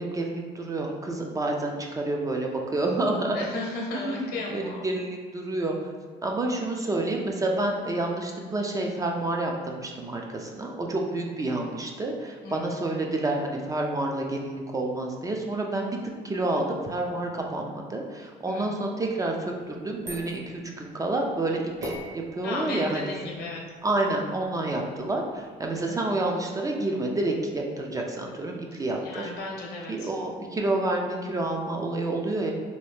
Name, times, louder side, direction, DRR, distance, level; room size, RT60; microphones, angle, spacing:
voice 1, 0.0-3.4 3.9-5.8 6.2-16.0 16.2-23.1 23.8-29.3 29.9-32.5, right 2 dB, 20° right, 1 dB, 0.3 m, -29 dB
voice 2, 3.3-4.9 12.4-12.7 18.4-18.7 22.4-23.6 25.7-26.0 29.0-30.1, left 3 dB, 75° left, -2 dB, 0.8 m, -35 dB
sound 1, 19.6-25.8, right 1 dB, 50° right, 1.1 m, -43 dB
2.7 x 2.6 x 3.4 m, 1.5 s
cardioid pair, 110°, 17 cm